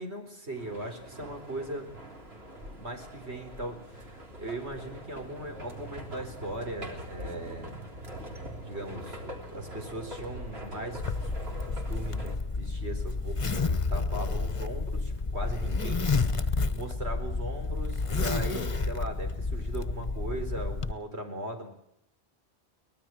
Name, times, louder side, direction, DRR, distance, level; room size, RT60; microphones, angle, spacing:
voice 1, 0.0-1.9 2.8-7.7 8.6-11.3 11.7-16.1 16.4-21.7, right 1 dB, 90° right, 4 dB, 4.7 m, -39 dB
sound 1, 0.6-12.4, equal, 70° right, 3.9 m, -43 dB
Zipper (clothing), 11.0-20.9, left 3 dB, 30° left, 1.1 m, -30 dB
23.5 x 20.0 x 7.7 m, 0.76 s
omnidirectional pair, 1.1 m